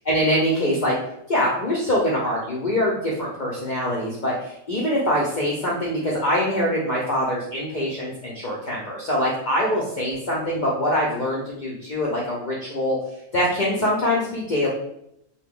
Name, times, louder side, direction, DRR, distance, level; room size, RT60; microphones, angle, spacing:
voice 1, 0.1-0.9 1.3-13.0 13.3-14.7, equal, 55° left, -4 dB, 0.5 m, -24 dB
2.7 x 2.2 x 3.5 m, 0.77 s
omnidirectional pair, 1.4 m